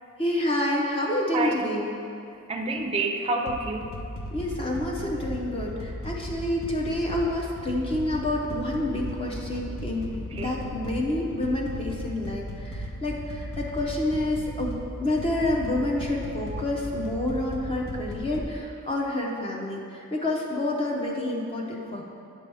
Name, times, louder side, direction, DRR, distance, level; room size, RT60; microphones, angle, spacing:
voice 1, 0.2-1.9 4.3-14.8 15.0-22.0, left 1 dB, 25° left, -2 dB, 0.6 m, -28 dB
voice 2, 1.3-1.6 2.5-3.9 10.1-10.6, right 2 dB, 25° right, 3 dB, 0.4 m, -28 dB
sound 1, 3.5-18.4, equal, 60° left, 0.6 m, -36 dB
9.0 x 5.3 x 3.4 m, 2.6 s
head